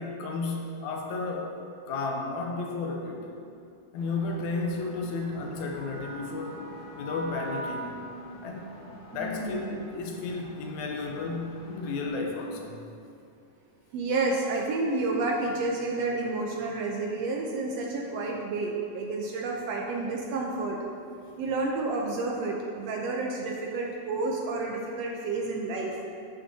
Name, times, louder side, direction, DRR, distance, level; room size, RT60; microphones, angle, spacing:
voice 1, 0.0-1.6 1.9-3.3 3.9-6.6 7.0-8.8 9.1-12.8 21.2-21.4, left 3 dB, 80° left, 1 dB, 2.1 m, -33 dB
sound 1, 4.0-12.1, right 1 dB, 55° left, 1.1 m, -44 dB
voice 2, 9.1-9.7 13.9-20.8 21.4-26.0, right 3 dB, 75° right, -1 dB, 1.6 m, -30 dB
12.5 x 5.9 x 2.8 m, 2.6 s
omnidirectional pair, 3.4 m